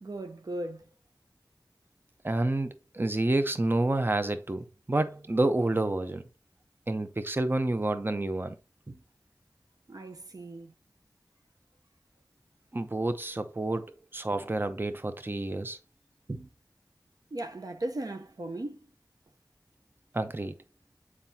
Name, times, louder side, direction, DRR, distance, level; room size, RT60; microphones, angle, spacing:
voice 1, 0.0-0.9 9.9-10.7 17.3-18.9, right 1 dB, 65° right, 0.7 m, -37 dB
voice 2, 2.2-6.2 6.9-8.6 12.7-13.9 14.1-15.8 16.3-16.5 20.1-20.6, right 2 dB, 30° right, 0.6 m, -29 dB
7.3 x 4.8 x 2.7 m
wide cardioid pair, 50°, 7 cm